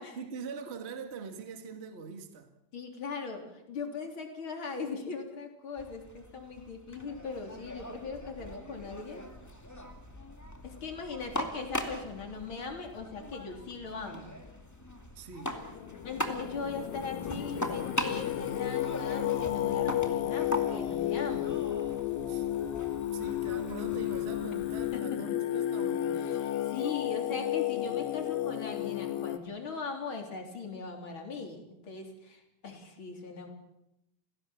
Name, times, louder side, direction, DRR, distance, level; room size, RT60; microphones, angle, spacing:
voice 1, 0.1-2.5 15.1-15.6 22.3-22.5 23.1-26.4, right 5 dB, 25° right, 1.3 m, -43 dB
voice 2, 2.7-9.2 10.6-14.4 16.0-21.6 24.9-25.4 26.2-33.5, left 4 dB, 35° left, 3.8 m, -39 dB
sound 1, 5.8-25.0, equal, 10° left, 1.1 m, -41 dB
Singing, 15.5-29.4, left 12 dB, 75° left, 2.9 m, -32 dB
29.5 x 16.5 x 7.2 m
omnidirectional pair, 4.4 m